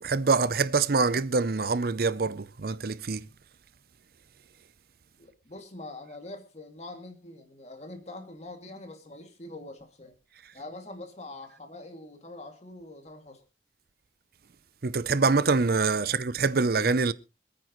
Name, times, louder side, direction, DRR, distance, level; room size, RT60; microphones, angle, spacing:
voice 1, 0.0-3.3 14.8-17.1, right 4 dB, 55° right, 0.6 m, -25 dB
voice 2, 5.2-10.1 10.5-13.4 16.0-16.2, left 2 dB, 35° left, 2.4 m, -44 dB
26.0 x 9.4 x 3.1 m
head